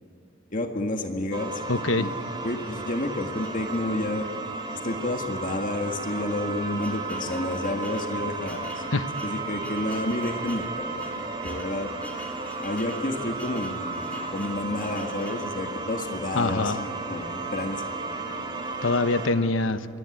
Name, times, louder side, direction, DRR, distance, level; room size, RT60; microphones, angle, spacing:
voice 1, 0.5-2.1 2.4-4.3 4.8-8.8 9.2-11.9 12.6-16.7 17.1-17.9, left 1 dB, 45° left, 3 dB, 1.7 m, -30 dB
sound 1, 1.3-19.3, right 3 dB, 25° right, 3.2 m, -34 dB
voice 2, 1.7-2.1 8.9-9.1 16.3-16.8 18.8-19.9, left 3 dB, 75° left, 11 dB, 1.1 m, -24 dB
sound 2, 3.4-4.3 5.0-5.1 5.4-5.5 6.2-15.5, left 1 dB, 10° left, 3.5 m, -47 dB
27.5 x 22.0 x 9.9 m, 2.7 s
head